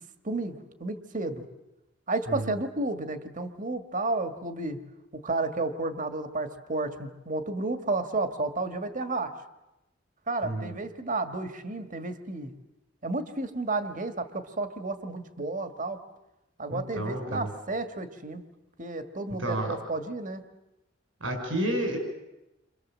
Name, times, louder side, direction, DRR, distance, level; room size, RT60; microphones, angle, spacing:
voice 1, 0.2-1.5 2.1-4.8 5.1-9.3 10.3-12.5 13.0-16.0 16.6-18.4 18.8-20.4, right 2 dB, 40° right, 8 dB, 1.8 m, -32 dB
voice 2, 16.7-17.5 19.4-19.7 21.2-22.0, right 1 dB, 85° right, 4 dB, 6.2 m, -30 dB
29.0 x 26.0 x 7.5 m, 0.94 s
head